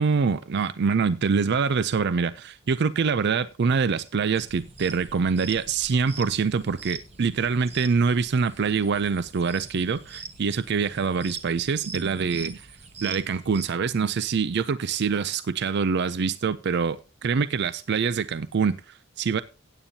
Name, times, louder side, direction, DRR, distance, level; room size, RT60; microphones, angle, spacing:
voice 1, 0.0-12.7 13.0-19.4, right 5 dB, 55° right, 15 dB, 0.5 m, -25 dB
sound 1, 4.3-13.6, right 5 dB, 35° right, 1.1 m, -43 dB
16.0 x 8.9 x 2.8 m, 0.31 s
head